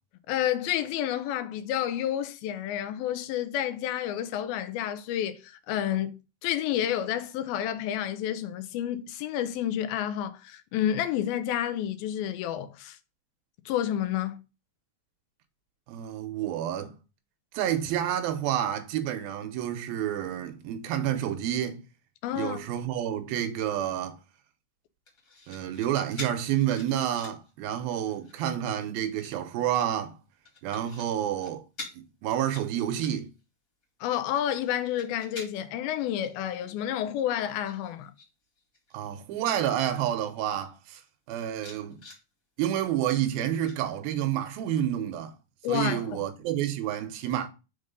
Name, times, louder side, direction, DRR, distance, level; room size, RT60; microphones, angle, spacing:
voice 1, 0.3-13.0 13.7-14.4 22.2-22.6 34.0-38.1 45.6-46.2, left 11 dB, 90° left, 2.6 m, -30 dB
voice 2, 15.9-17.0 17.5-21.8 22.3-24.2 25.5-30.2 30.6-31.6 31.9-33.3 38.9-41.0 41.3-42.0 42.6-45.3 45.7-47.5, right 11 dB, 90° right, 2.7 m, -29 dB
sound 1, 25.1-25.9 26.2-27.5 27.9-28.4 29.1-29.9 30.5-31.1 31.4-31.5 31.8-32.0 32.3-33.4 33.8-35.8 36.2-36.4 36.7-38.3 38.6-39.0 39.6-39.7 39.9-40.6 41.1-41.2 41.5-42.2 43.7-44.4 44.8-44.9, left 3 dB, 30° left, 2.0 m, -46 dB
6.3 x 4.0 x 5.2 m
omnidirectional pair, 4.2 m